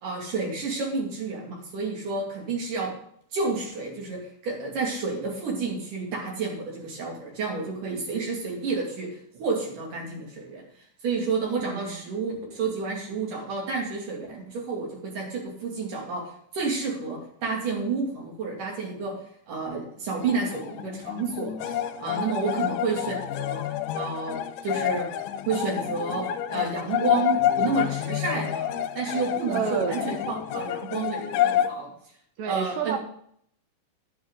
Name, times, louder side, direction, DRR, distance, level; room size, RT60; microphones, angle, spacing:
voice 1, 0.0-2.9 3.3-10.6 11.0-19.2 19.5-23.7 24.0-24.4 24.6-25.2 25.5-31.9 32.5-33.0, right 4 dB, 55° right, -1 dB, 3.8 m, -30 dB
voice 2, 11.6-12.0 22.4-22.7 29.5-30.0 32.4-33.0, right 6 dB, 80° right, 7 dB, 2.0 m, -30 dB
sound 1, 20.2-31.7, left 11 dB, 80° left, 2.4 m, -28 dB
11.0 x 9.2 x 3.7 m, 0.67 s
omnidirectional pair, 4.7 m